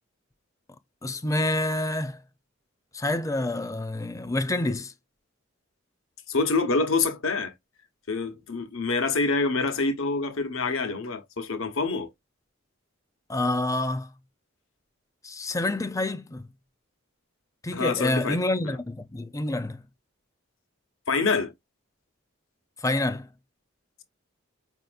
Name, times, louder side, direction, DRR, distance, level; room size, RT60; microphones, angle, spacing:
voice 1, 1.0-2.2 2.9-4.9 13.3-14.1 15.2-16.5 17.6-19.8 22.8-23.3, left 2 dB, 15° left, 0.4 m, -27 dB
voice 2, 6.3-7.5 8.1-12.1 17.7-18.4 21.1-21.5, left 3 dB, 80° left, 1.0 m, -26 dB
5.2 x 2.8 x 2.4 m
head